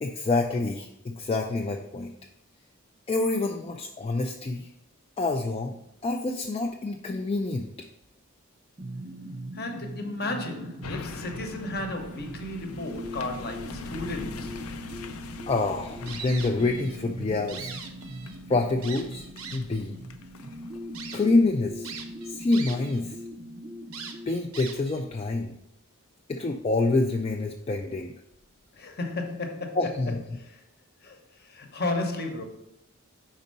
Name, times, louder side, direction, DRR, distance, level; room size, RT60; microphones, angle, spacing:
voice 1, 0.0-2.1 3.1-4.7 5.2-7.7 15.5-17.7 18.5-19.2 19.5-20.0 21.1-21.9 22.3-23.2 24.3-25.5 26.3-28.1 29.7-30.2, left 2 dB, 25° left, 0.3 m, -27 dB
sound 1, 8.8-24.3, equal, 30° right, 0.5 m, -41 dB
voice 2, 9.5-14.6 28.7-29.9 30.3-30.6 31.0-32.4, left 2 dB, 45° left, 0.9 m, -33 dB
sound 2, 10.8-22.3 22.7-22.8, left 4 dB, 85° left, 0.5 m, -44 dB
sound 3, 16.1-17.0 17.3-18.4 18.8-19.8 20.4-20.5 20.9-21.2 21.8-23.0 23.3-23.4 23.9-25.0, right 6 dB, 75° right, 0.7 m, -41 dB
5.3 x 4.0 x 5.2 m
head